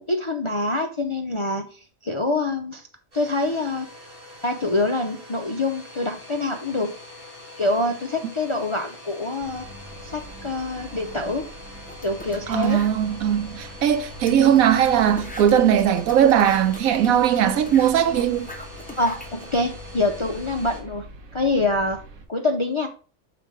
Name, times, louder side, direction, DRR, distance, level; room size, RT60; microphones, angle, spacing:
voice 1, 0.0-2.9 3.1-3.9 4.4-6.9 7.6-9.6 10.0-11.5 12.0-12.8 19.0-21.1 21.3-22.0 22.3-22.9, left 2 dB, 45° left, 0.4 m, -25 dB
Domestic sounds home sounds, 3.1-20.8, left 1 dB, 40° right, 2.0 m, -43 dB
sound 1, 9.4-22.2, equal, 70° right, 1.4 m, -43 dB
sound 2, 11.9-12.9 13.5-13.6 13.8-13.9 14.3-19.6, left 1 dB, 5° left, 0.9 m, -41 dB
voice 2, 12.5-18.5, right 9 dB, 90° right, 1.2 m, -19 dB
5.9 x 4.4 x 4.8 m
omnidirectional pair, 1.4 m